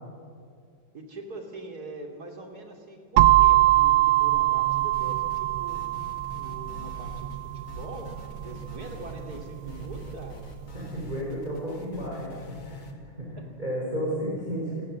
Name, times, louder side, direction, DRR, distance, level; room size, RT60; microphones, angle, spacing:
voice 1, 0.9-5.9 6.4-8.1 8.4-10.4 13.3-13.4, right 2 dB, 50° right, 2 dB, 3.5 m, -42 dB
sound 1, 3.2-11.0, right 16 dB, 80° right, 1.6 m, -24 dB
sound 2, 4.9-5.4 5.7-7.4 7.7-12.9, left 3 dB, 85° left, 2.8 m, -46 dB
voice 2, 10.7-12.3 12.6-14.8, equal, 20° right, -5 dB, 5.3 m, -32 dB
28.0 x 18.5 x 7.6 m, 2.2 s
omnidirectional pair, 2.1 m